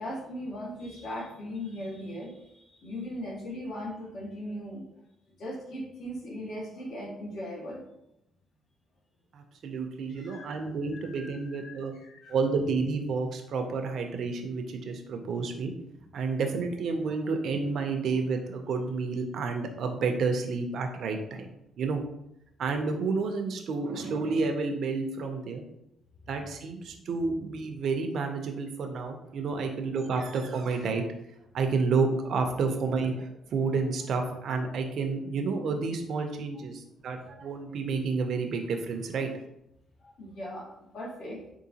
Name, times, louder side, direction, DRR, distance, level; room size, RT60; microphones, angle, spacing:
voice 1, 0.0-4.8 5.4-7.8 10.2-10.5 10.9-12.3 40.0-41.4, equal, 70° left, -4 dB, 1.0 m, -39 dB
voice 2, 9.3-11.9 12.3-15.7 16.1-22.0 22.6-25.6 26.3-31.0 31.5-39.4, right 4 dB, 65° right, 4 dB, 0.4 m, -30 dB
3.7 x 2.4 x 2.7 m, 0.82 s
cardioid pair, 90°, 0 cm